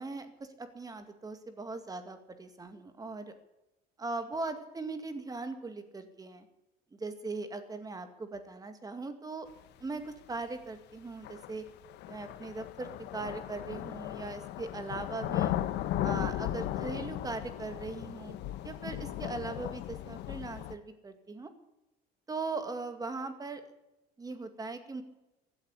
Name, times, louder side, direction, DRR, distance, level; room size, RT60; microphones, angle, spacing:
voice 1, 0.0-3.4 4.0-6.5 6.9-9.5 9.8-11.6 12.1-15.6 16.0-18.4 18.6-21.5 22.3-23.6 24.2-25.0, right 3 dB, 20° right, 8 dB, 2.2 m, -39 dB
sound 1, 10.2-10.3 11.2-20.7, left 12 dB, 65° left, 1.0 m, -36 dB
15.5 x 9.0 x 9.9 m, 0.94 s
cardioid pair, 115°, 19 cm